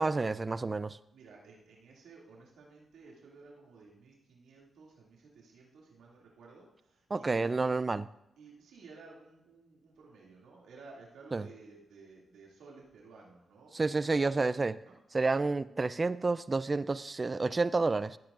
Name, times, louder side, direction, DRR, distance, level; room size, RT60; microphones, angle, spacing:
voice 1, 0.0-1.0 7.1-8.0 11.3-11.5 13.7-14.7 15.1-18.2, right 3 dB, 35° right, 16 dB, 0.5 m, -29 dB
voice 2, 1.1-7.7 8.4-15.2, right 4 dB, 80° right, -3 dB, 2.5 m, -55 dB
15.5 x 8.9 x 2.6 m, 0.85 s
supercardioid pair, 45°, 0 cm